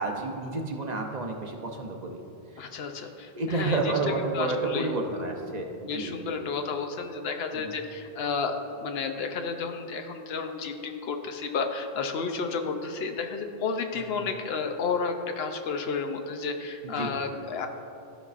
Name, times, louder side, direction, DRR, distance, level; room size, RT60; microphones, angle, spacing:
voice 1, 0.0-2.2 2.5-2.7 3.3-6.3 7.5-7.7 13.9-14.1 16.8-17.1, right 3 dB, 50° right, 2 dB, 0.7 m, -30 dB
voice 2, 2.6-4.9 5.8-17.7, left 5 dB, 75° left, 5 dB, 0.9 m, -32 dB
13.0 x 5.3 x 2.5 m, 2.9 s
omnidirectional pair, 1.0 m